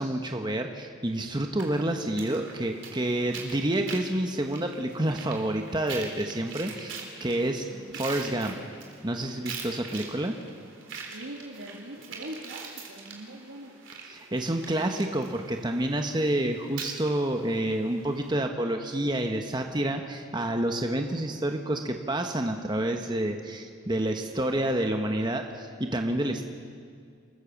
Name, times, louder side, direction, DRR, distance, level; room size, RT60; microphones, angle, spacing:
voice 1, 0.0-7.6 7.9-8.5 9.0-10.4 14.1-26.4, right 1 dB, 20° right, 4 dB, 1.1 m, -28 dB
sound 1, 1.6-18.3, right 5 dB, 65° right, 3.6 m, -44 dB
voice 2, 7.6-8.0 11.1-13.7, right 1 dB, 85° right, -2 dB, 2.3 m, -42 dB
27.5 x 14.5 x 7.3 m, 2.2 s
head